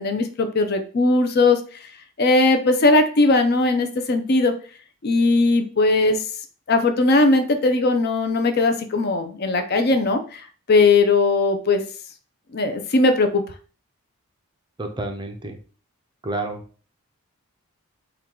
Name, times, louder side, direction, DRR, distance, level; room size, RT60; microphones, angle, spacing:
voice 1, 0.0-1.6 2.2-4.5 5.0-6.2 6.7-11.8 12.5-13.4, left 3 dB, 45° left, 6 dB, 0.4 m, -19 dB
voice 2, 14.8-15.6 16.2-16.6, right 2 dB, 20° right, 5 dB, 0.4 m, -29 dB
4.4 x 2.3 x 3.7 m, 0.40 s
head